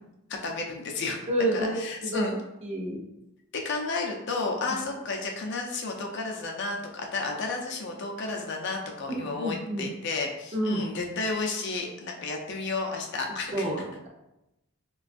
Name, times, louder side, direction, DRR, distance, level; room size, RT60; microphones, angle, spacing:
voice 1, 0.4-1.2 1.5-2.4 3.5-13.7, left 3 dB, 50° left, 1 dB, 0.4 m, -32 dB
voice 2, 1.3-2.3 2.6-3.0 9.1-9.9 10.5-10.8 13.5-14.1, right 1 dB, 30° right, 0 dB, 0.5 m, -29 dB
4.1 x 2.2 x 2.5 m, 0.91 s
head